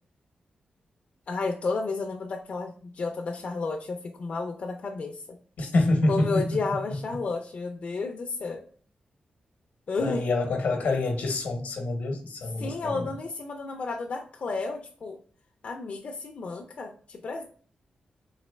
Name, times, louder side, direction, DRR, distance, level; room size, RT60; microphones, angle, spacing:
voice 1, 1.3-5.4 6.1-8.6 9.9-10.3 12.6-15.2 15.6-17.4, left 4 dB, 55° left, 2 dB, 0.4 m, -32 dB
voice 2, 5.6-6.2 10.0-13.1, left 2 dB, 80° left, 4 dB, 0.8 m, -26 dB
4.0 x 2.8 x 2.2 m, 0.44 s
cardioid pair, 80°, 3 cm